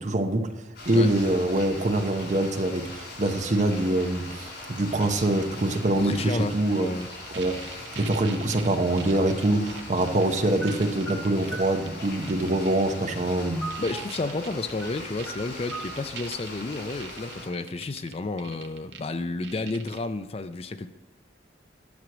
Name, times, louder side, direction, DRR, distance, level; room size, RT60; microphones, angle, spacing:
voice 1, 0.0-6.9 7.3-7.6 7.9-13.7, right 1 dB, 40° right, 7 dB, 0.8 m, -25 dB
sound 1, 0.7-17.5, left 2 dB, 65° left, 4.4 m, -41 dB
voice 2, 6.0-7.1 13.8-20.9, left 3 dB, 35° left, 11 dB, 0.4 m, -31 dB
sound 2, 7.0-9.8 10.1-10.2 10.6-11.5 11.9-12.7 13.2-13.3 13.7-19.1 19.4-20.0, right 7 dB, 75° right, 1.0 m, -42 dB
sound 3, 10.6-11.7 13.3-14.2 14.7-15.0 15.3-15.9, right 2 dB, ahead, 2.0 m, -38 dB
10.5 x 6.3 x 6.1 m, 1.0 s
head